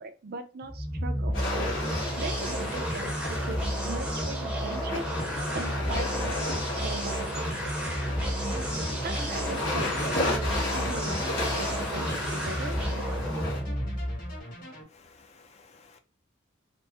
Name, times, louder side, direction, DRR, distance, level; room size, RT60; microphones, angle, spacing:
voice 1, 0.0-1.4 2.2-5.1 5.5-7.5 9.0-12.8, right 3 dB, 55° right, 0.5 m, -39 dB
sound 1, 0.6-14.4, equal, 5° right, 0.6 m, -31 dB
sound 2, 1.3-13.6, left 2 dB, 75° left, 1.4 m, -34 dB
sound 3, 8.0-14.8, left 1 dB, 50° left, 1.5 m, -43 dB
voice 2, 14.9-16.0, left 4 dB, 35° left, 0.4 m, -56 dB
3.4 x 2.0 x 2.9 m
head